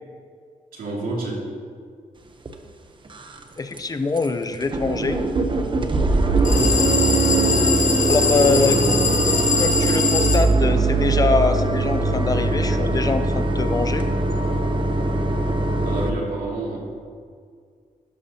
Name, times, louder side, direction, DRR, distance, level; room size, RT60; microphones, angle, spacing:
voice 1, 0.7-1.5 7.9-8.8 10.1-10.2 15.8-16.8, right 2 dB, 85° right, -3 dB, 2.5 m, -30 dB
sound 1, 2.4-2.5 3.0-3.4 3.7-3.8 4.2-4.3 4.5-16.1, right 2 dB, 35° right, 0.9 m, -21 dB
voice 2, 3.6-5.2 8.0-8.8 9.6-14.1, left 4 dB, 25° left, 9 dB, 0.6 m, -23 dB
sound 2, 6.4-10.4, left 6 dB, 60° left, 1.4 m, -23 dB
12.0 x 11.0 x 2.9 m, 2.1 s
cardioid pair, 110°, 14 cm